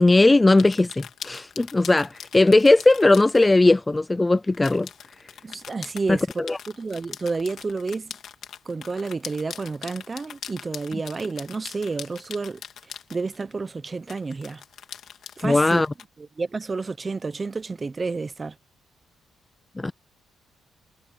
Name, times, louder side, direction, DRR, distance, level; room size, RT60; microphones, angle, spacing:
voice 1, 0.0-4.9 6.1-6.6 15.4-15.9 19.8-19.9, left 2 dB, 15° left, 0.3 m, -18 dB
sound 1, 0.6-3.5 4.5-13.5 14.1-16.0, left 8 dB, 65° left, 2.5 m, -41 dB
voice 2, 5.4-6.4 6.7-8.1 8.7-12.6 13.1-14.6 15.4-15.8 16.2-18.5, right 4 dB, 30° right, 0.8 m, -30 dB
cardioid pair, 90°, 0 cm